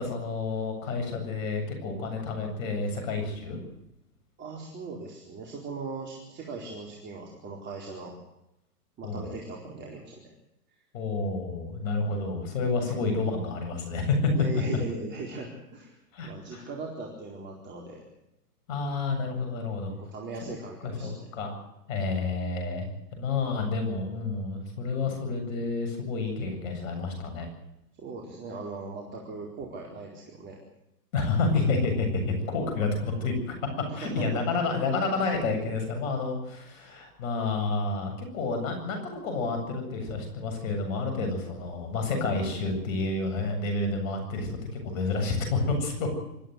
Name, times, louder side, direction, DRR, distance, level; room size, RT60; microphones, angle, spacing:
voice 1, 0.0-3.6 9.0-9.4 10.9-14.3 16.1-16.7 18.7-19.9 20.8-21.6 21.9-27.5 31.1-33.5 34.0-46.1, left 3 dB, 55° left, 5 dB, 7.9 m, -29 dB
voice 2, 4.4-8.1 9.0-10.3 12.8-12.9 14.3-15.9 16.2-18.0 20.0-21.3 28.0-30.6 33.9-34.4, right 3 dB, 25° right, -1 dB, 4.3 m, -39 dB
26.0 x 14.0 x 8.0 m, 0.86 s
hypercardioid pair, 125°, 48 cm